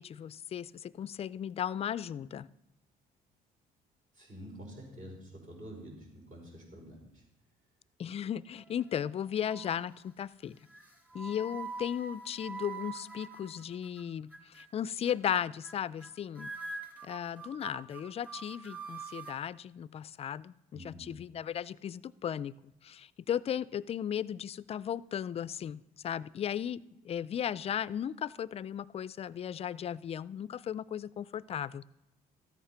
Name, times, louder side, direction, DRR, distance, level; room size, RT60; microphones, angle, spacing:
voice 1, 0.0-2.5 8.0-10.6 11.1-16.5 17.0-22.5 22.8-31.8, left 9 dB, 35° left, 19 dB, 0.4 m, -36 dB
voice 2, 4.1-7.2 20.7-21.1, equal, 50° right, 0 dB, 5.4 m, -48 dB
sound 1, 8.5-9.1 9.4-9.9 10.7-14.0 14.3-14.7 15.1-15.4 15.6-16.1 16.4-19.4, right 4 dB, 10° right, 2.3 m, -44 dB
13.5 x 8.5 x 5.6 m, 0.87 s
cardioid pair, 110°, 17 cm